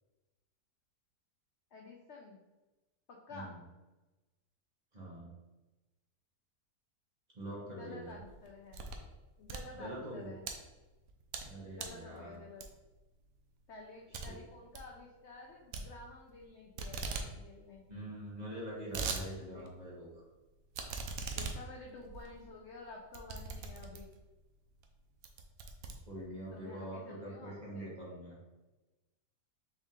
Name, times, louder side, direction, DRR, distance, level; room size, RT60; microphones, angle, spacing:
voice 1, 1.7-2.4 3.1-3.5 7.6-8.9 9.4-10.5 11.7-12.7 13.7-17.8 19.5-19.7 21.3-24.1 26.5-28.0, left 3 dB, 80° left, -1 dB, 0.6 m, -51 dB
voice 2, 3.3-3.6 4.9-5.3 7.3-8.2 9.7-10.3 11.4-12.4 14.1-14.4 17.9-20.2 26.0-28.4, right 1 dB, 30° right, -6 dB, 1.0 m, -44 dB
sound 1, 8.1-9.1 9.4-10.5 11.0-11.5 11.8-12.0 12.6-13.0 13.3-13.4 13.7-13.8 14.1-14.3 14.6-14.9 15.7-16.5 16.8-17.3 17.6-17.7 17.9-18.0 18.5-19.2 19.7-19.8 20.7-24.2 24.8-24.9 25.2-26.5, right 4 dB, 70° right, 0.9 m, -41 dB
4.5 x 2.8 x 3.6 m, 1.1 s
omnidirectional pair, 1.8 m